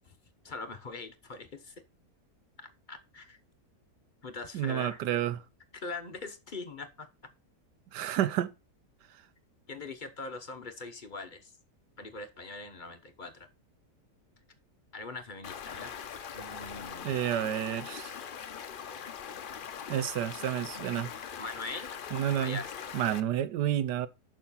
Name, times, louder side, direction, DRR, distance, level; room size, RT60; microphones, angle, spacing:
voice 1, 0.4-1.8 2.9-3.4 4.2-5.0 5.7-7.1 9.7-11.5 12.0-13.5 14.9-16.0 16.3-17.2 21.4-21.9 22.3-22.7, left 3 dB, 40° left, 0.8 m, -42 dB
voice 2, 4.5-5.4 7.9-8.5 17.0-18.1 19.9-21.1 22.1-22.6 22.9-24.1, right 11 dB, 85° right, 1.3 m, -30 dB
Stream, 15.4-23.2, left 7 dB, 65° left, 0.5 m, -41 dB
6.8 x 5.8 x 5.5 m
omnidirectional pair, 1.8 m